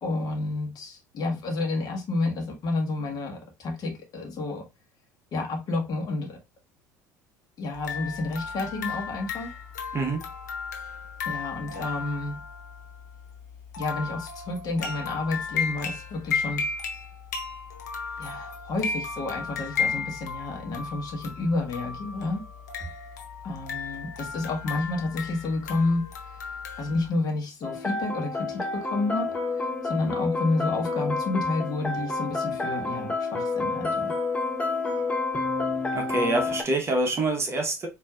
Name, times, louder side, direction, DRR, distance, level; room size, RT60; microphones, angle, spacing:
voice 1, 0.0-4.6 5.3-6.4 7.6-9.5 11.2-12.4 13.8-16.6 18.2-22.4 23.4-26.0 26.8-29.3 29.8-34.1, left 2 dB, 45° left, 1.2 m, -30 dB
sound 1, 7.7-27.1, left 5 dB, 75° left, 0.7 m, -34 dB
sound 2, 27.6-36.6, left 3 dB, 15° left, 0.9 m, -29 dB
voice 2, 35.9-37.9, right 2 dB, 30° right, 1.0 m, -26 dB
4.4 x 2.8 x 2.4 m
figure-of-eight pair, 65°, 9 cm